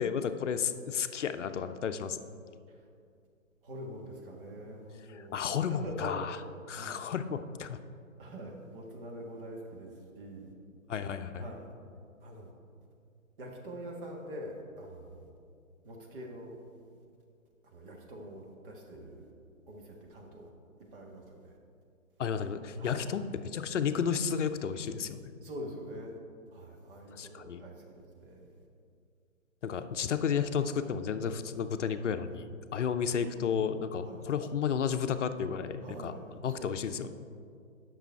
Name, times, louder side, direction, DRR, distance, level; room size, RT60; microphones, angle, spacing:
voice 1, 0.0-2.2 5.1-6.4 6.7-7.8 10.9-11.4 22.2-23.2 23.5-25.3 27.2-27.6 29.6-36.1 36.4-37.1, left 7 dB, 60° left, 10 dB, 0.6 m, -32 dB
voice 2, 3.6-7.0 8.2-10.5 11.3-11.7 12.2-12.5 13.4-15.3 15.8-16.6 17.6-19.3 19.7-20.5 20.9-21.6 22.8-23.1 25.4-26.2 26.5-28.6 33.1-33.5 34.0-34.3 35.8-37.0, equal, 40° right, 0 dB, 1.6 m, -45 dB
9.0 x 6.3 x 4.5 m, 2.3 s
figure-of-eight pair, 140°, 42 cm